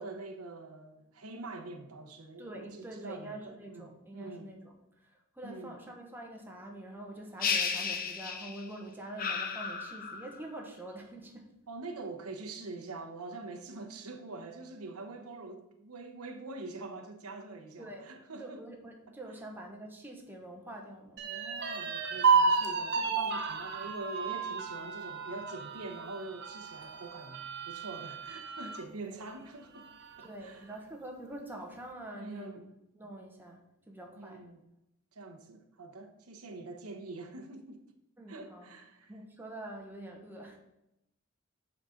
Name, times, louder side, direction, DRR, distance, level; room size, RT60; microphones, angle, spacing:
voice 1, 0.0-4.5 5.4-5.7 11.7-18.6 19.1-19.2 21.2-29.9 30.2-30.7 32.2-32.6 34.2-34.6 35.1-37.8 38.3-39.1, right 3 dB, 90° right, 1.0 m, -44 dB
voice 2, 2.4-4.7 5.0-11.5 17.8-18.0 18.4-21.2 29.0-29.2 30.2-32.6 32.9-33.6 33.9-34.4 38.2-38.7 39.1-40.6, right 1 dB, 10° right, 1.1 m, -45 dB
sound 1, 7.4-8.7 9.2-10.4, left 5 dB, 40° left, 0.8 m, -33 dB
sound 2, 21.2-28.8 29.3-29.4 29.8-30.4, right 5 dB, 50° right, 0.9 m, -32 dB
6.9 x 4.3 x 6.4 m
head